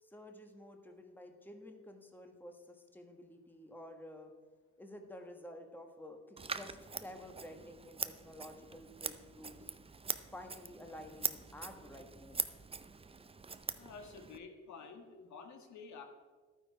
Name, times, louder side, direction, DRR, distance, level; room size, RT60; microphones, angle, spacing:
voice 1, 0.0-4.3 4.8-9.7 10.3-12.5, left 1 dB, 5° left, 4 dB, 1.3 m, -51 dB
Scissors, 6.4-14.4, right 4 dB, 20° right, 0.5 m, -43 dB
voice 2, 13.7-16.0, left 5 dB, 70° left, 4 dB, 1.6 m, -50 dB
11.5 x 9.2 x 4.6 m, 1.4 s
cardioid pair, 90°, 30 cm